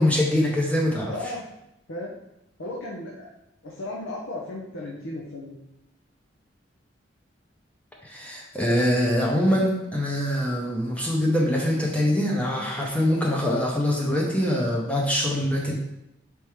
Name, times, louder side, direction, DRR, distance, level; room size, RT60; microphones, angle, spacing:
voice 1, 0.0-1.1 8.0-15.8, left 1 dB, 5° left, -2 dB, 0.6 m, -23 dB
voice 2, 1.1-1.4 1.9-2.1 2.6-3.3 3.6-5.6, left 2 dB, 90° left, -4 dB, 0.7 m, -35 dB
4.5 x 3.5 x 3.1 m, 0.84 s
head